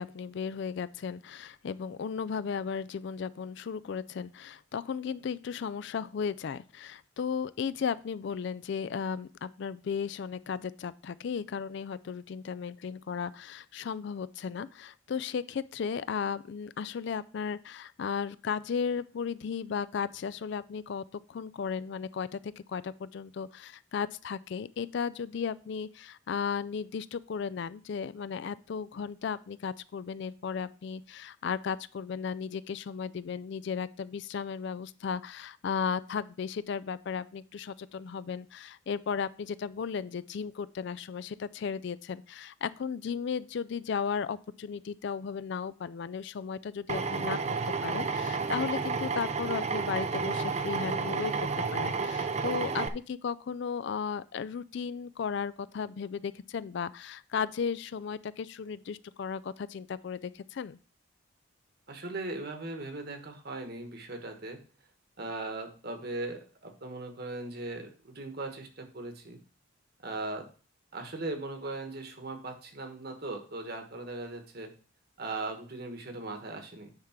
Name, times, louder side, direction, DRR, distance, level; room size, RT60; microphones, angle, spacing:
voice 1, 0.0-47.4 47.7-60.8, left 6 dB, 55° left, 16 dB, 0.3 m, -35 dB
Drill, 46.9-52.9, right 4 dB, 30° right, 0.5 m, -31 dB
voice 2, 52.4-52.8 61.9-64.6 65.2-69.4 70.0-70.5 70.9-74.7 75.2-76.9, right 2 dB, 50° right, 6 dB, 1.3 m, -39 dB
9.5 x 3.7 x 5.8 m, 0.38 s
head